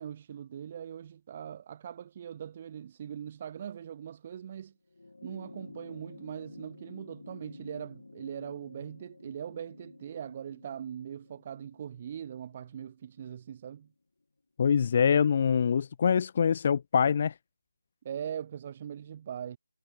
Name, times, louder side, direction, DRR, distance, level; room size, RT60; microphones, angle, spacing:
voice 1, 0.0-4.7 5.2-13.9 18.0-19.6, right 9 dB, 25° right, 1.1 m, -41 dB
sound 1, 4.9-13.6 14.8-14.9, left 3 dB, 70° left, 4.6 m, -51 dB
voice 2, 14.6-17.3, left 7 dB, 30° left, 0.6 m, -24 dB
figure-of-eight pair, 165°, 0 cm